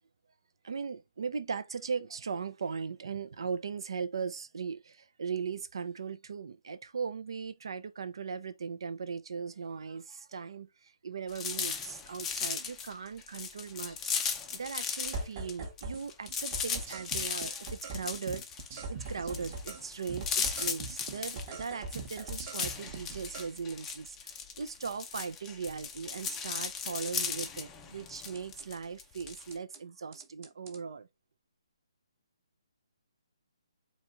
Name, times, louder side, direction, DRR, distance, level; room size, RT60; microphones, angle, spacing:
voice 1, 0.6-14.1 14.5-18.4 18.9-31.1, right 5 dB, 60° right, 0.6 m, -38 dB
sound 1, 11.3-15.2 15.5-29.5, left 6 dB, 10° left, 0.5 m, -37 dB
sound 2, 15.1-16.0 16.3-19.8 20.1-23.5 28.3-28.6 29.2-29.8 30.1-30.8, right 3 dB, 25° right, 1.0 m, -41 dB
4.2 x 3.4 x 3.7 m
hypercardioid pair, 165°, 3 cm